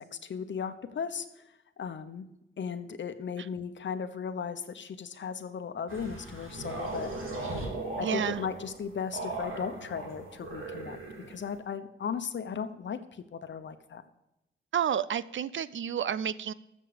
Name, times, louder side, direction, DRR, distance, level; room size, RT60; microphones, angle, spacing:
voice 1, 0.0-1.4 1.8-2.3 2.6-7.2 8.0-11.0 11.3-14.0, left 6 dB, 65° left, 10 dB, 1.0 m, -36 dB
sound 1, 5.9-11.6, right 2 dB, 85° right, 3.7 m, -38 dB
voice 2, 8.0-8.4 14.7-16.5, right 8 dB, 70° right, 17 dB, 0.5 m, -30 dB
13.5 x 7.5 x 5.1 m, 0.90 s
wide cardioid pair, 145°, 20 cm